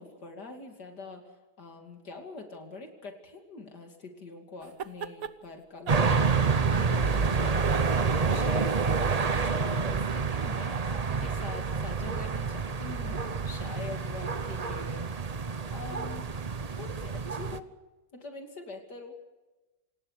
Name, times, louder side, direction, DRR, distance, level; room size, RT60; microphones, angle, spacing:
voice 1, 0.0-7.8 8.3-8.7 9.3-15.1 15.7-16.3 16.8-17.7 18.1-19.2, left 3 dB, 80° left, 4 dB, 3.3 m, -44 dB
sound 1, 4.6-5.3 5.9-7.2 7.6-9.8, right 8 dB, 60° right, 1.4 m, -41 dB
sound 2, 5.9-17.6, right 5 dB, 35° right, 0.7 m, -28 dB
27.5 x 19.5 x 6.7 m, 1.1 s
omnidirectional pair, 1.8 m